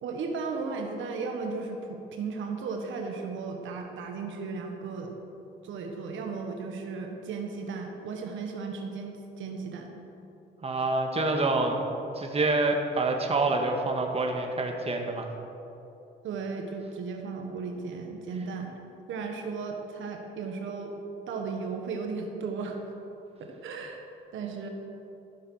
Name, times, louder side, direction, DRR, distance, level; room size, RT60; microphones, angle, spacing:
voice 1, 0.0-5.1 5.6-9.9 16.2-18.8 19.1-20.9 21.3-22.8 23.4-24.0 24.3-24.7, right 4 dB, 80° right, 2 dB, 1.3 m, -35 dB
voice 2, 10.6-11.8 12.1-15.3, right 2 dB, 30° right, 2 dB, 1.5 m, -27 dB
13.5 x 7.3 x 6.4 m, 3.0 s
cardioid pair, 90°, 20 cm